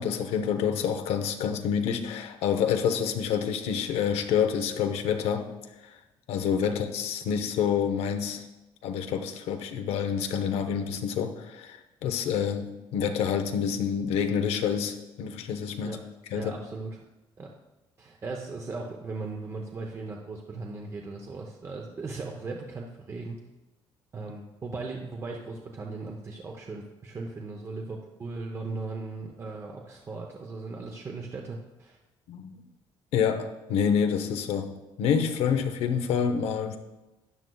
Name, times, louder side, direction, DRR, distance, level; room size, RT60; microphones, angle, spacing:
voice 1, 0.0-5.5 6.3-8.4 8.8-16.0 16.3-16.5 32.3-32.6 33.1-34.7 35.0-36.8, left 7 dB, 90° left, 7 dB, 0.8 m, -27 dB
voice 2, 16.3-17.0 17.4-17.5 18.0-23.4 24.1-32.0, right 3 dB, 25° right, 1 dB, 0.7 m, -38 dB
12.5 x 9.1 x 2.3 m, 1.0 s
cardioid pair, 150°, 10 cm